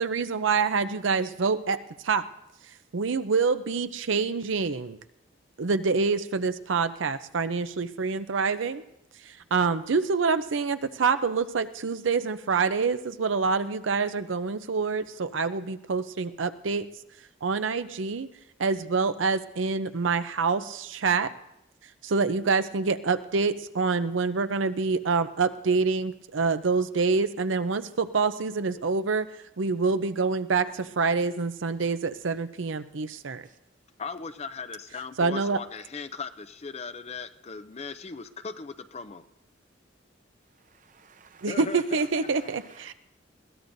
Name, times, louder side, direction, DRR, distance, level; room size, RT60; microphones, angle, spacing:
voice 1, 0.0-2.3 2.9-5.0 5.6-8.8 9.3-16.9 17.4-18.3 18.6-21.3 22.0-29.3 29.6-33.4 35.2-35.6 41.4-42.9, right 4 dB, 75° right, 0.6 m, -26 dB
voice 2, 34.0-39.2 41.5-42.5, left 4 dB, 35° left, 0.5 m, -38 dB
voice 3, 40.6-41.6 41.9-42.9, right 6 dB, 40° right, 0.7 m, -54 dB
21.5 x 16.5 x 2.7 m
head